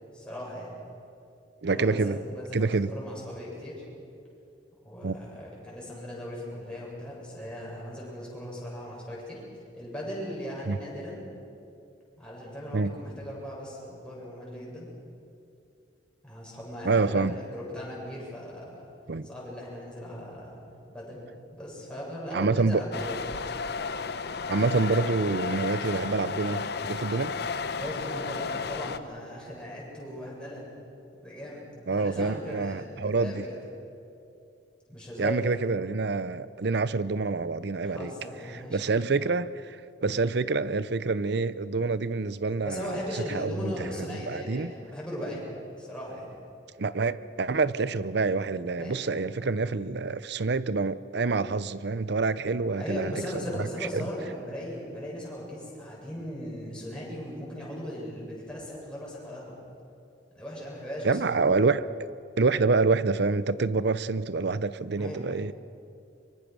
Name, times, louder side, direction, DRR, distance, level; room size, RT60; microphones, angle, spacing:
voice 1, 0.1-0.8 1.7-3.8 4.8-9.4 9.8-11.2 12.2-14.9 16.2-18.9 19.2-20.6 20.9-21.2 21.5-23.3 27.8-30.7 31.2-33.6 34.9-35.6 37.8-38.9 42.6-45.5 45.8-46.3 48.8-49.2 52.8-59.6 60.3-61.2 65.0-65.3, equal, 5° left, -6 dB, 7.7 m, -38 dB
voice 2, 1.6-2.2 2.5-2.9 5.0-5.2 10.7-10.8 12.7-12.9 16.8-17.3 19.1-19.3 22.3-22.8 24.5-27.3 31.9-33.4 35.2-38.1 38.7-42.9 43.3-43.7 44.1-44.7 46.8-53.7 53.9-54.0 61.0-61.9 62.4-65.5, right 3 dB, 65° right, 16 dB, 0.7 m, -27 dB
sound 1, 22.9-29.0, left 5 dB, 65° left, 0.9 m, -33 dB
24.0 x 23.5 x 6.3 m, 2.5 s
head